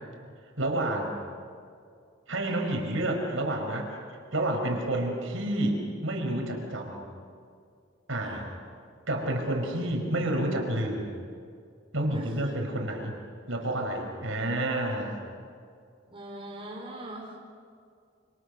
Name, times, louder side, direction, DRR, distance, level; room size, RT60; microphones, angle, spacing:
voice 1, 0.6-1.2 2.3-3.9 4.3-7.1 8.1-8.4 9.1-11.1 11.9-13.1 13.5-15.2, right 1 dB, 80° right, 2 dB, 5.1 m, -29 dB
voice 2, 8.2-8.5 12.1-12.5 16.1-17.4, right 1 dB, 25° right, -1 dB, 4.4 m, -41 dB
29.0 x 26.5 x 6.7 m, 2.3 s
head